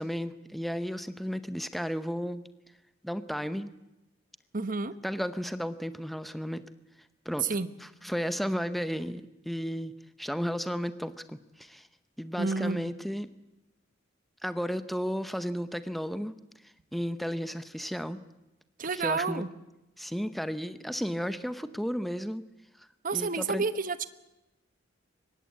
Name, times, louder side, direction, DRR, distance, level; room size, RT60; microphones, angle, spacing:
voice 1, 0.0-2.5 3.0-3.7 5.0-6.6 7.2-7.5 7.8-9.9 10.2-11.9 12.2-13.3 14.4-16.3 16.9-18.2 18.9-19.4 20.0-22.4 23.1-23.6, equal, ahead, 12 dB, 0.8 m, -33 dB
voice 2, 4.5-4.9 7.4-7.7 12.4-12.8 18.8-19.5 23.0-24.1, right 4 dB, 45° right, 13 dB, 1.1 m, -29 dB
24.0 x 21.0 x 8.4 m, 0.96 s
head